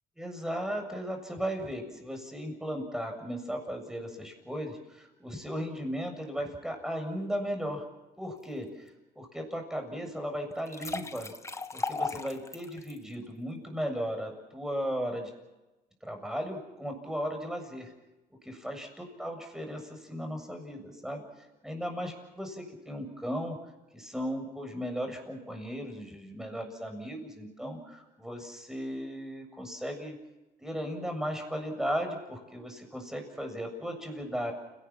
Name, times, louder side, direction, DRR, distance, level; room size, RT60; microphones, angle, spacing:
voice 1, 0.2-7.8 8.2-11.3 11.7-15.3 16.0-17.9 18.4-21.2 21.6-23.6 23.9-30.1 30.6-34.5, equal, 5° right, 4 dB, 7.5 m, -36 dB
sound 1, 10.5-13.0, left 3 dB, 15° left, 1.7 m, -36 dB
29.5 x 18.5 x 7.4 m, 1.0 s
cardioid pair, 110°, 17 cm